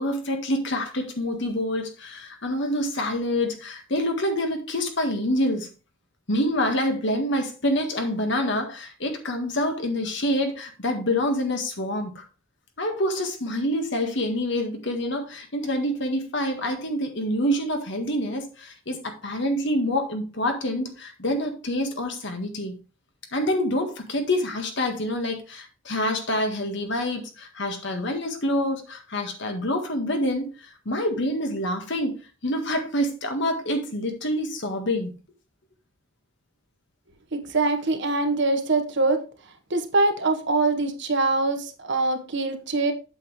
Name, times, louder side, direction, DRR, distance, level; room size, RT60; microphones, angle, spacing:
voice 1, 0.0-5.7 6.3-12.2 12.8-22.8 23.3-30.5 30.8-32.2 32.4-35.1, left 1 dB, 65° left, 1.7 m, -26 dB
voice 2, 37.3-39.2 39.7-42.9, right 3 dB, 60° right, 1.4 m, -23 dB
8.2 x 7.4 x 3.3 m
head